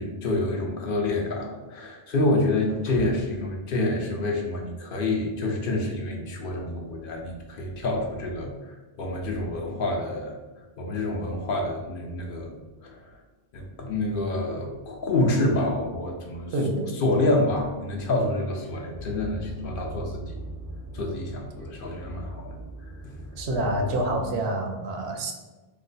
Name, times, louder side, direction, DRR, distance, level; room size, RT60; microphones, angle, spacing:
voice 1, 0.0-12.6 12.8-13.2 13.5-16.5 16.9-20.4 20.9-22.6 22.8-23.2, left 2 dB, 65° left, 1 dB, 0.7 m, -28 dB
voice 2, 16.5-16.9 23.3-25.3, right 1 dB, 90° right, 3 dB, 0.9 m, -27 dB
sound 1, 18.9-24.3, right 1 dB, 15° left, 0.4 m, -39 dB
2.9 x 2.1 x 3.9 m, 1.2 s
omnidirectional pair, 1.0 m